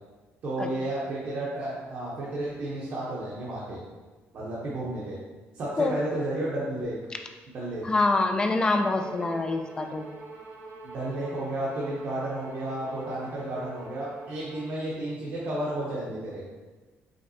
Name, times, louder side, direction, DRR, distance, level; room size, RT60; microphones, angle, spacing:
voice 1, 0.4-3.8 4.3-5.2 5.5-7.0 7.5-7.8 10.8-16.4, right 1 dB, 50° right, -7 dB, 0.8 m, -32 dB
voice 2, 7.8-10.1, left 3 dB, 20° left, 5 dB, 0.3 m, -25 dB
Bowed string instrument, 9.0-14.7, right 3 dB, 65° right, 1.1 m, -46 dB
5.1 x 3.5 x 2.8 m, 1.3 s
cardioid pair, 170°, 5 cm